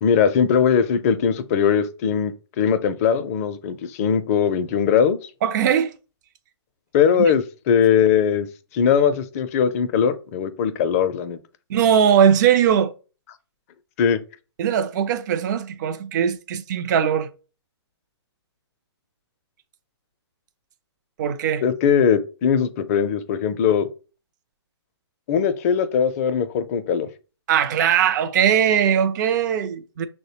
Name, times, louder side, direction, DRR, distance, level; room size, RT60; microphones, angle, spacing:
voice 1, 0.0-5.3 6.9-8.5 8.7-11.4 14.0-14.2 21.6-23.9 25.3-27.1, left 7 dB, 35° left, 0.4 m, -20 dB
voice 2, 5.4-5.9 11.7-12.9 14.6-17.3 21.2-21.6 27.5-30.1, right 8 dB, 40° right, 0.4 m, -20 dB
6.2 x 2.1 x 2.8 m
hypercardioid pair, 135°, 14 cm